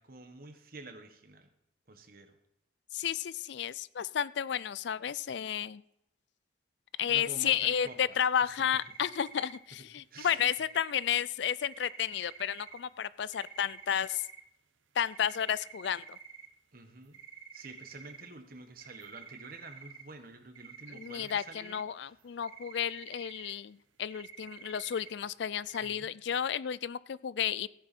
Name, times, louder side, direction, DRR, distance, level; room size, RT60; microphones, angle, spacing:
voice 1, 0.0-1.5 1.9-2.3 7.1-8.5 10.1-10.4 16.7-17.2 17.5-22.1 25.8-26.1, right 2 dB, 50° right, 6 dB, 1.5 m, -49 dB
voice 2, 2.9-5.8 7.0-14.3 15.0-16.2 20.9-27.7, left 9 dB, 65° left, 19 dB, 0.4 m, -32 dB
sound 1, 7.6-8.0 8.5-9.6 10.2-11.1 11.7-12.8 13.3-14.4 15.1-16.5 17.1-18.3 18.8-20.0 20.5-21.8 22.2-23.5 24.1-25.1 25.7-25.9, right 7 dB, 90° right, 0.9 m, -50 dB
14.5 x 9.8 x 4.4 m, 0.81 s
head